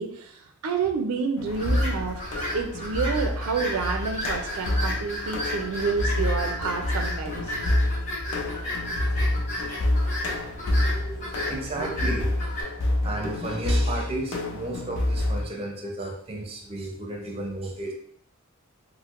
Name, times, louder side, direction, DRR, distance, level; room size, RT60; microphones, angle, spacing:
voice 1, 0.0-7.6, right 5 dB, 80° right, 5 dB, 0.4 m, -29 dB
sound 1, 1.4-15.4, left 1 dB, 65° left, 0.5 m, -28 dB
sound 2, 1.5-12.6, equal, 35° left, 0.9 m, -34 dB
voice 2, 10.9-12.5 12.9-17.9, right 1 dB, 30° right, 1 dB, 0.6 m, -33 dB
4.4 x 2.1 x 2.4 m, 0.64 s
head